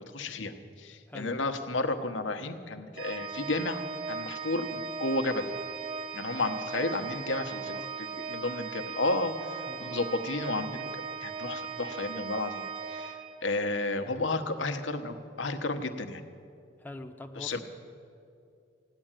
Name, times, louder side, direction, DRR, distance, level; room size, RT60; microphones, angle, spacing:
voice 1, 0.0-5.5 6.1-12.6 12.9-13.2 13.4-16.2 17.4-17.6, left 2 dB, 85° left, 7 dB, 1.1 m, -32 dB
Organ, 3.0-13.8, right 5 dB, 30° right, 0.9 m, -38 dB
voice 2, 7.5-7.9 9.7-10.1 16.8-17.6, left 1 dB, 10° left, 3 dB, 0.7 m, -44 dB
16.0 x 10.0 x 9.0 m, 2.5 s
head